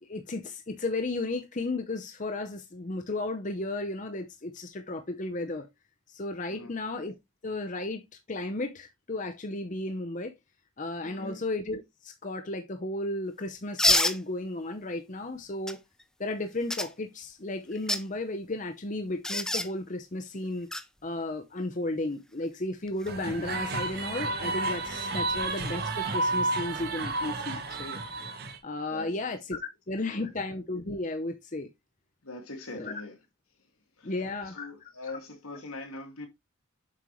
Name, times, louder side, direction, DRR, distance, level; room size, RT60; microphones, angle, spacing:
voice 1, 0.0-5.7 6.1-7.1 7.4-10.3 10.8-15.8 16.2-20.7 21.0-28.0 28.6-31.7 32.7-32.9 34.0-34.7, left 2 dB, 35° left, 0.8 m, -34 dB
voice 2, 11.0-11.4 25.1-25.3 28.9-29.3 30.1-30.3 32.2-33.2 34.0-34.1 34.4-36.3, left 2 dB, 85° left, 2.3 m, -42 dB
sound 1, 13.8-14.2 15.7-15.8 16.7-16.9 17.7-18.0 19.2-19.7 20.7-20.8 22.9-23.1, left 1 dB, 5° left, 0.4 m, -25 dB
sound 2, 23.1-28.6, right 2 dB, 45° right, 1.4 m, -31 dB
7.7 x 5.5 x 3.1 m
head